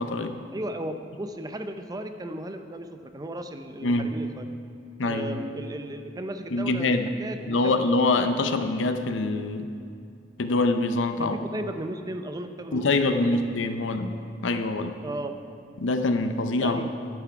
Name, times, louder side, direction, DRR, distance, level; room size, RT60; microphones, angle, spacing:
voice 1, 0.0-0.4 3.8-4.1 5.0-5.4 6.5-7.1 7.5-9.7 10.4-11.4 12.7-14.1 14.4-15.0 15.8-16.9, left 2 dB, 85° left, 8 dB, 0.6 m, -25 dB
voice 2, 0.5-4.5 5.0-7.8 11.2-13.4 15.0-15.3 16.6-16.9, right 1 dB, 20° right, 7 dB, 0.5 m, -35 dB
11.5 x 6.2 x 5.7 m, 2.4 s
head